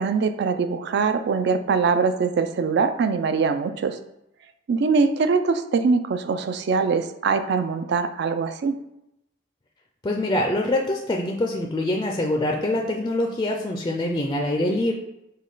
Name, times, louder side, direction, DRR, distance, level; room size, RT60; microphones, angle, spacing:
voice 1, 0.0-4.0 4.7-8.7, right 5 dB, 60° right, 9 dB, 0.3 m, -22 dB
voice 2, 10.0-14.9, left 1 dB, 20° left, 1 dB, 0.4 m, -24 dB
5.2 x 2.2 x 3.8 m, 0.85 s
head